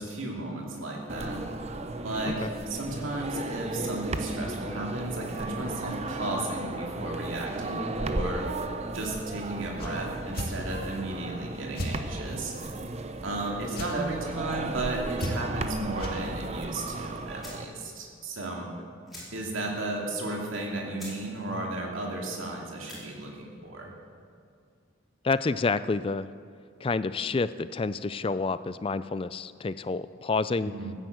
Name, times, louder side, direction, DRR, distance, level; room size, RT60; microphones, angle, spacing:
voice 1, 0.0-1.5 2.0-8.5 8.9-12.7 13.2-18.7 19.3-23.9 30.6-30.9, right 2 dB, 75° right, -1 dB, 2.5 m, -34 dB
sound 1, 1.1-17.7, right 2 dB, 30° right, 0.7 m, -35 dB
sound 2, 9.8-9.9 10.3-10.5 11.7-11.9 13.7-13.9 15.2-15.6 16.0-16.2, equal, 45° left, 2.3 m, -33 dB
sound 3, 15.2-15.6 16.9-17.0 17.4-17.7 18.1-18.2 18.4-18.6 19.0-19.6 20.0-20.1 20.6-20.7 21.0-21.2 21.6-21.9 22.7-23.0, equal, ahead, 4.7 m, -46 dB
voice 2, 25.2-26.3 26.8-30.7, left 4 dB, 25° left, 14 dB, 0.3 m, -29 dB
15.0 x 9.9 x 8.0 m, 2.2 s
head